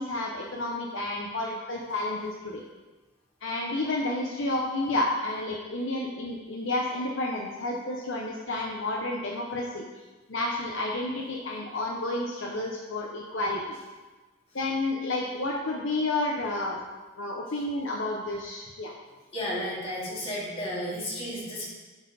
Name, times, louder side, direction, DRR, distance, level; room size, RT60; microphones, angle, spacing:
voice 1, 0.0-2.6 3.4-9.8 10.3-13.6 14.5-16.8 17.2-18.9, left 2 dB, 65° left, -1 dB, 0.8 m, -30 dB
voice 2, 19.3-21.7, equal, 30° left, -8 dB, 2.6 m, -33 dB
11.0 x 4.4 x 4.1 m, 1.2 s
head